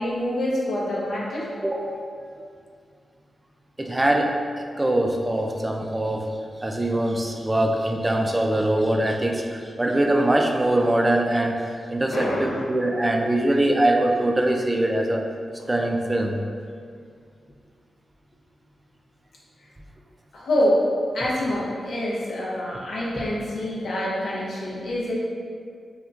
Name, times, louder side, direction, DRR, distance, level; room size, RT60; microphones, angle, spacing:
voice 1, 0.0-1.4 12.1-12.6 20.3-20.8 21.1-25.2, left 1 dB, 75° left, -6 dB, 0.6 m, -26 dB
voice 2, 1.6-2.0 3.8-6.3 6.6-15.2 15.7-16.4, right 1 dB, 25° right, 2 dB, 0.3 m, -23 dB
2.9 x 2.3 x 2.4 m, 2.2 s
supercardioid pair, 40°, 0 cm